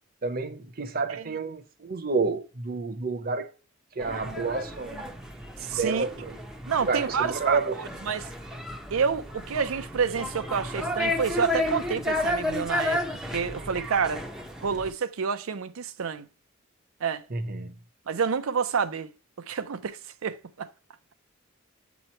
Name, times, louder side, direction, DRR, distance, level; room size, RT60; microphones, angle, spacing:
voice 1, 0.2-3.5 3.9-5.1 5.7-6.4 6.8-7.7 17.3-17.7, right 4 dB, 45° right, 0.8 m, -29 dB
sound 1, 4.0-14.9, left 1 dB, ahead, 0.7 m, -32 dB
voice 2, 5.7-6.0 6.7-8.3 8.9-13.0 13.3-14.2 14.6-16.3 17.0-17.3 18.1-19.1 19.5-20.7, right 6 dB, 80° right, 0.5 m, -28 dB
7.8 x 3.0 x 4.3 m
head